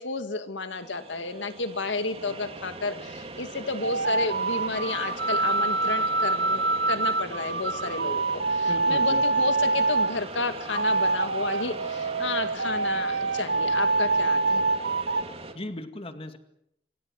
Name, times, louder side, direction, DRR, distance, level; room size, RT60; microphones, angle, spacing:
voice 1, 0.0-14.7, left 3 dB, 90° left, 9 dB, 2.0 m, -32 dB
sound 1, 0.7-15.5, right 3 dB, 35° right, 2.7 m, -40 dB
sound 2, 3.7-10.1 10.7-15.2, right 3 dB, 60° right, 1.1 m, -25 dB
voice 2, 8.7-9.2 15.5-16.4, left 1 dB, 30° left, 8 dB, 2.1 m, -37 dB
27.5 x 25.5 x 6.4 m, 0.76 s
head